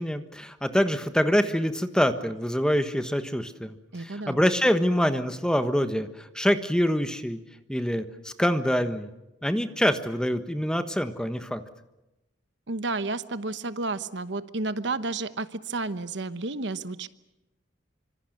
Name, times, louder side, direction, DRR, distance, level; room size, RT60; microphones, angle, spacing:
voice 1, 0.0-7.4 7.7-9.1 9.4-11.6, equal, 5° left, 9 dB, 1.3 m, -25 dB
voice 2, 3.9-4.4 12.7-17.1, right 3 dB, 65° right, 12 dB, 1.1 m, -31 dB
26.0 x 25.5 x 6.6 m, 0.96 s
head